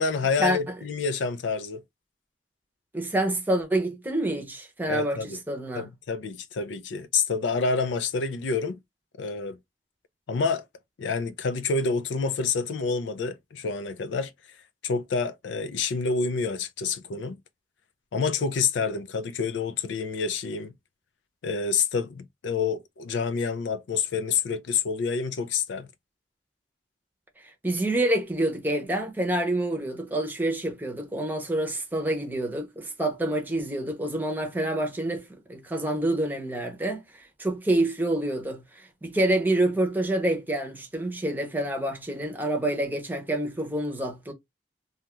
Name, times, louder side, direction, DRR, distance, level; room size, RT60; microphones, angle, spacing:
voice 1, 0.0-1.8 4.9-5.4 5.8-8.8 9.2-9.6 10.3-10.6 11.0-14.3 14.8-17.4 18.1-20.7 21.4-25.9, left 5 dB, 85° left, 0.4 m, -28 dB
voice 2, 2.9-5.9 27.6-44.3, right 1 dB, 10° right, 0.7 m, -27 dB
2.7 x 2.3 x 3.0 m
head